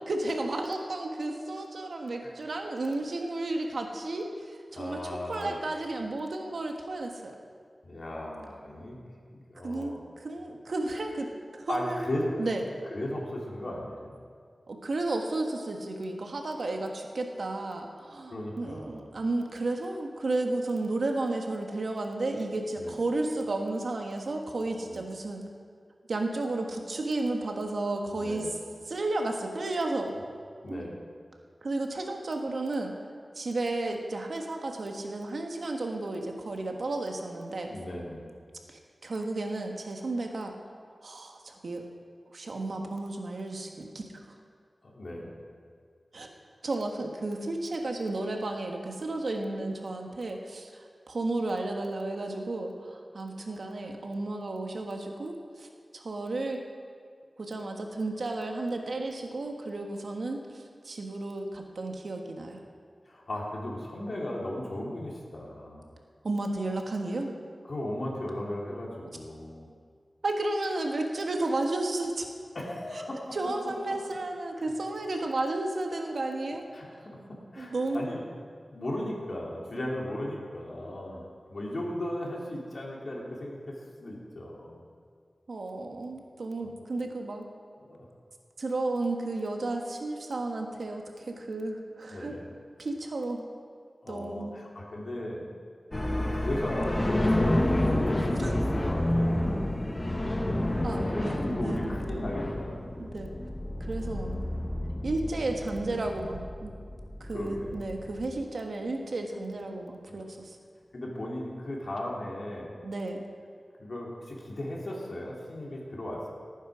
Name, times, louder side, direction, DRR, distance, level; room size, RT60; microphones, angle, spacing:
voice 1, 0.1-7.3 9.6-11.3 11.5-12.0 12.4-12.6 14.7-25.4 26.1-28.5 28.9-30.1 30.7-30.8 31.6-32.9 33.3-37.7 38.7-40.5 41.0-41.8 42.3-44.1 46.1-46.3 46.6-55.7 55.9-56.6 57.4-62.6 66.2-67.3 70.2-72.3 73.3-76.6 77.6-78.1 85.5-87.5 88.6-92.3 92.8-93.5 94.1-94.7 98.3-98.6 100.8-101.9 103.0-103.3 103.8-104.4 105.0-106.7 107.2-110.6 112.8-113.2, right 2 dB, 80° right, 2 dB, 1.5 m, -33 dB
voice 2, 4.7-5.6 7.8-9.0 9.3-10.0 11.7-12.3 12.9-14.1 18.3-19.1 22.7-23.0 24.8-25.0 28.1-28.5 30.6-31.0 37.6-38.2 44.8-45.3 63.0-65.8 67.7-69.7 72.5-73.4 73.9-74.0 76.7-78.2 78.7-81.2 81.5-84.8 86.6-86.7 87.8-88.0 91.2-91.5 92.1-92.5 94.0-95.4 96.3-99.6 101.0-102.8 105.4-105.5 107.3-107.8 110.1-110.3 110.9-112.7 113.8-116.3, left 1 dB, 60° left, -3 dB, 3.2 m, -36 dB
sound 1, 95.9-108.4, left 1 dB, 30° left, 1.4 m, -29 dB
18.0 x 9.3 x 5.0 m, 2.1 s
wide cardioid pair, 70°, 0 cm